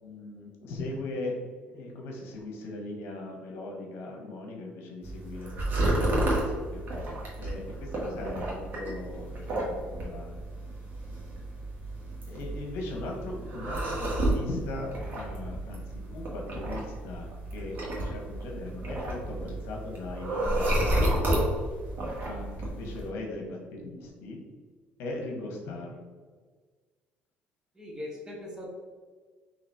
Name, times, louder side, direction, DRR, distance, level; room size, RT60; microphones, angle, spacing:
voice 1, 0.0-5.5 6.0-6.4 6.7-6.8 7.4-10.4 12.3-21.3 22.2-24.4 25.0-26.0, left 2 dB, 80° left, 0 dB, 1.0 m, -39 dB
sound 1, 5.0-23.1, right 1 dB, 50° right, 1.4 m, -31 dB
voice 2, 27.7-28.6, left 1 dB, 15° right, -1 dB, 1.1 m, -40 dB
3.9 x 3.0 x 4.3 m, 1.5 s
cardioid pair, 120°, 4 cm